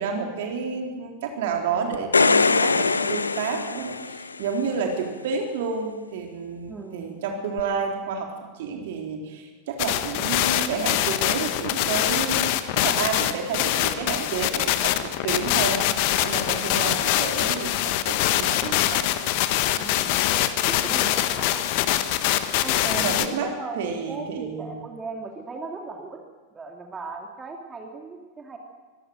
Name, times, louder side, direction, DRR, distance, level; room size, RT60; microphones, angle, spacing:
voice 1, 0.0-8.3 8.6-19.1 22.6-24.8, right 5 dB, 55° right, 2 dB, 3.9 m, -30 dB
sound 1, 1.9-4.5 7.6-7.7, left 4 dB, 75° left, 0.7 m, -22 dB
voice 2, 6.7-7.1 19.8-20.2 20.6-21.9 22.6-26.2 26.5-28.6, right 4 dB, 15° right, 2 dB, 2.9 m, -37 dB
sound 2, 9.8-23.3, left 13 dB, 45° left, 1.3 m, -24 dB
24.0 x 16.5 x 8.0 m, 1.3 s
figure-of-eight pair, 90°, 0 cm